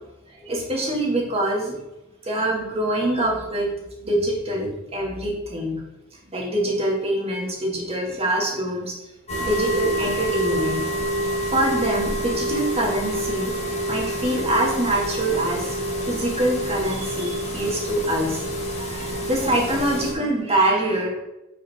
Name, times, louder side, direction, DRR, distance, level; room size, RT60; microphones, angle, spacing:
voice 1, 0.4-1.8 2.2-3.7 4.0-5.7 6.3-8.9 9.4-10.8 11.5-13.5 13.9-15.7 16.1-18.4 18.8-21.1, right 1 dB, 30° right, -1 dB, 2.3 m, -24 dB
sound 1, 9.3-20.1, equal, 30° left, 1.9 m, -27 dB
10.0 x 5.4 x 3.6 m, 0.93 s
head